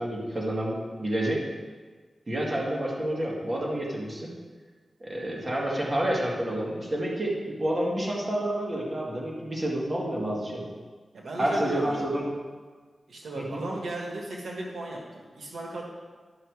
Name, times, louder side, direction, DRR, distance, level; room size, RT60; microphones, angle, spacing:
voice 1, 0.0-1.4 2.3-4.3 5.0-10.7 11.4-12.2 13.3-13.6, right 1 dB, 35° right, -3 dB, 2.2 m, -29 dB
voice 2, 11.1-12.0 13.1-15.8, right 2 dB, 85° right, -2 dB, 1.5 m, -36 dB
11.5 x 5.8 x 4.9 m, 1.4 s
wide cardioid pair, 85°, 0 cm